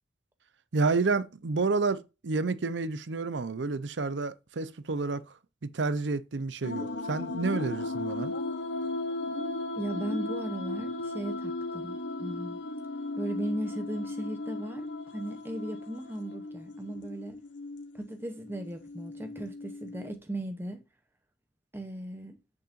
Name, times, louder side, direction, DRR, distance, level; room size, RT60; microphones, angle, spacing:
voice 1, 0.7-5.2 5.6-8.3, right 3 dB, 90° right, 0.7 m, -30 dB
sound 1, 6.6-20.1, left 2 dB, 85° left, 0.9 m, -36 dB
voice 2, 9.8-12.6 13.2-14.9 15.1-17.4 17.9-20.8 21.7-22.4, right 1 dB, 15° right, 0.8 m, -37 dB
8.6 x 6.5 x 2.6 m
head